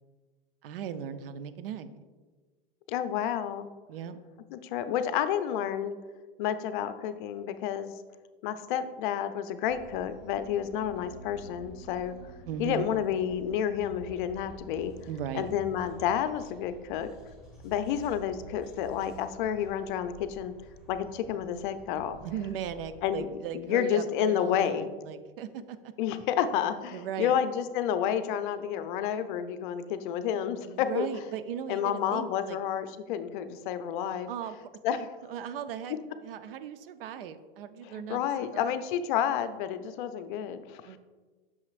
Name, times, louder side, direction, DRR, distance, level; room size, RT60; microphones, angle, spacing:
voice 1, 0.6-1.9 3.9-4.2 12.5-12.9 15.1-15.5 22.2-25.9 26.9-27.4 30.6-32.6 34.3-34.5 35.3-36.0 36.2-38.8 40.8-41.0, right 8 dB, 70° right, 11 dB, 0.6 m, -37 dB
voice 2, 2.9-3.7 4.5-5.9 6.4-7.9 8.4-12.1 12.6-14.9 15.3-17.1 17.6-20.5 20.9-22.2 23.0-23.3 23.5-24.9 26.0-31.1 31.7-34.3 34.8-35.1 37.8-41.0, left 9 dB, 55° left, 11 dB, 0.6 m, -30 dB
sound 1, 9.7-23.3, right 2 dB, ahead, 2.0 m, -50 dB
sound 2, 10.1-16.1, right 2 dB, 45° right, 2.0 m, -58 dB
8.4 x 6.4 x 2.5 m, 1.4 s
hypercardioid pair, 100°, 29 cm